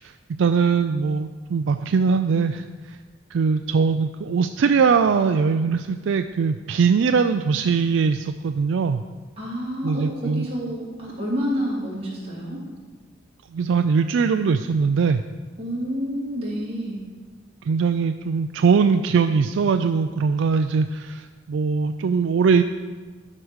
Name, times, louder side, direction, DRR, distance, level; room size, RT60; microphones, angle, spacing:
voice 1, 0.4-3.0 3.3-9.0 9.8-10.5 13.5-15.2 17.7-22.6, right 5 dB, 70° right, 8 dB, 0.4 m, -21 dB
voice 2, 9.4-12.6 15.6-17.0, equal, 30° right, -6 dB, 3.2 m, -28 dB
11.5 x 5.0 x 6.3 m, 1.4 s
head